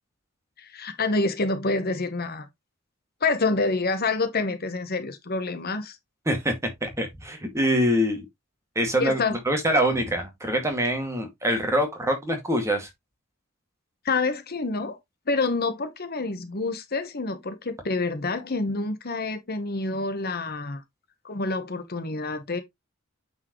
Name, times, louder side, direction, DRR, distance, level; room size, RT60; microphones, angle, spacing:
voice 1, 0.6-2.5 3.2-6.0 9.0-9.4 14.0-15.0 15.3-20.8 21.2-22.6, left 3 dB, 45° left, 1.1 m, -27 dB
voice 2, 6.8-8.3 8.8-9.2 9.5-12.9, equal, 15° right, 2.2 m, -24 dB
8.8 x 4.8 x 3.1 m
head